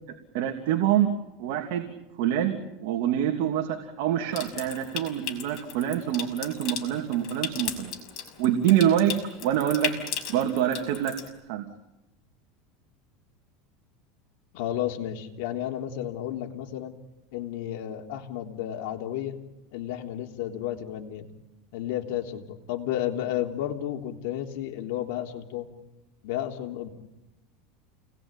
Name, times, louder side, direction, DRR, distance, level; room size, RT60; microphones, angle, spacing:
voice 1, 0.3-1.1 1.4-1.9 2.2-7.9 8.4-9.9 10.3-11.1 11.5-11.6, right 10 dB, 65° right, 3 dB, 2.9 m, -25 dB
Water tap faucet / Sink (filling or washing) / Trickle dribble, 4.3-11.3, left 9 dB, 45° left, 5.9 m, -37 dB
voice 2, 14.5-16.9 17.3-19.4 19.7-21.3 21.7-25.7 26.2-26.9, left 11 dB, 65° left, 3 dB, 3.5 m, -32 dB
29.5 x 20.0 x 9.1 m, 0.94 s
supercardioid pair, 145°, 0 cm